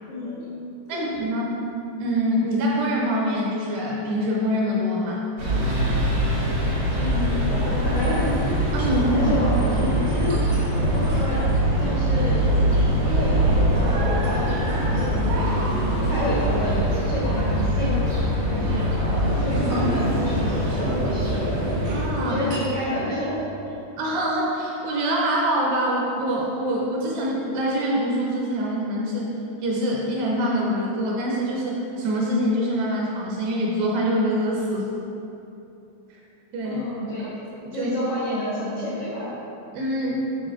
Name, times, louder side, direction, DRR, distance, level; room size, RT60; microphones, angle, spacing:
voice 1, 0.1-0.4 0.9-1.1 6.9-8.7 9.1-10.4 10.8-12.4 13.0-13.5 13.7-14.5 14.9-15.5 15.7-23.4 36.6-37.3 37.7-39.3, left 1 dB, 90° left, -9 dB, 1.3 m, -30 dB
voice 2, 0.9-1.6 2.0-5.2 8.7-9.3 19.5-19.9 21.9-22.4 24.0-29.3 29.6-34.9 36.5-36.8 37.7-37.9 39.7-40.2, equal, 70° right, -3 dB, 2.7 m, -25 dB
sound 1, 5.4-22.1, right 1 dB, 55° right, 1.1 m, -23 dB
sound 2, 8.2-22.6, left 1 dB, 90° right, 1.7 m, -29 dB
10.5 x 6.7 x 3.7 m, 2.9 s
omnidirectional pair, 5.7 m